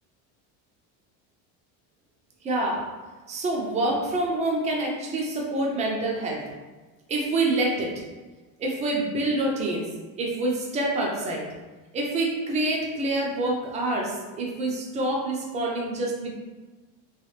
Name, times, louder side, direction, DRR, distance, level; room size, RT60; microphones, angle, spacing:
voice 1, 2.4-2.8 3.3-6.4 7.1-7.9 8.6-9.9 10.2-11.5 11.9-16.4, right 2 dB, 20° right, -2 dB, 0.5 m, -26 dB
3.2 x 3.0 x 3.2 m, 1.2 s
cardioid pair, 160°, 38 cm